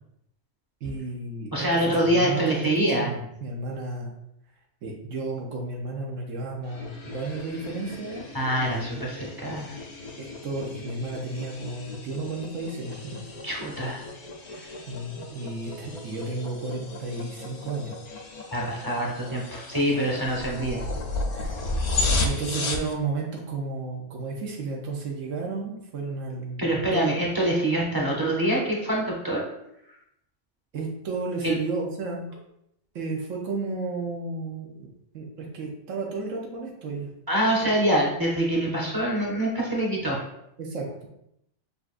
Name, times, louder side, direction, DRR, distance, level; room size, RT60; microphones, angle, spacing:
voice 1, 0.8-1.5 1.8-4.1 4.8-8.3 8.6-9.3 10.2-13.2 14.9-17.9 20.0-20.2 21.3-21.6 22.2-26.7 26.9-27.0 30.7-32.3 32.9-37.1 40.6-40.9, right 3 dB, 90° right, -1 dB, 1.1 m, -33 dB
voice 2, 1.5-3.1 8.3-9.8 13.4-14.0 14.6-14.7 18.5-20.9 26.6-29.4 31.4-31.6 37.3-40.2, right 1 dB, 20° right, -3 dB, 0.7 m, -25 dB
sound 1, 6.6-22.9, left 2 dB, 55° left, 0.4 m, -34 dB
6.7 x 2.4 x 2.5 m, 0.78 s
omnidirectional pair, 1.3 m